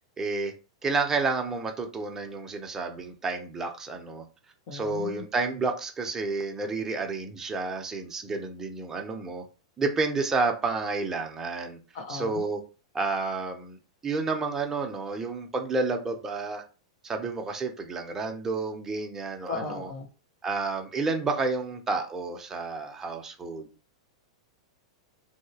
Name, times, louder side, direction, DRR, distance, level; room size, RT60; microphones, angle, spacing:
voice 1, 0.2-0.5 0.8-4.2 4.7-9.5 9.8-11.8 12.1-12.6 12.9-13.8 14.0-16.6 17.0-19.9 20.4-23.7, right 3 dB, 15° right, 0.6 m, -30 dB
voice 2, 4.7-5.2 11.9-12.4 19.5-20.1, left 4 dB, 55° left, 1.0 m, -36 dB
3.0 x 2.8 x 2.8 m
hypercardioid pair, 125°, 3 cm